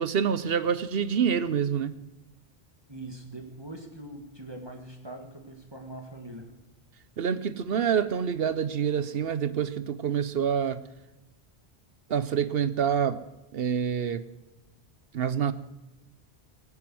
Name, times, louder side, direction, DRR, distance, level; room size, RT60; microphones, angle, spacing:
voice 1, 0.0-2.0 7.2-10.8 12.1-13.2 13.5-14.2 15.1-15.5, right 7 dB, 70° right, 1.0 m, -27 dB
voice 2, 2.9-6.5, right 1 dB, 25° right, 1.9 m, -42 dB
18.0 x 9.8 x 7.7 m
omnidirectional pair, 1.0 m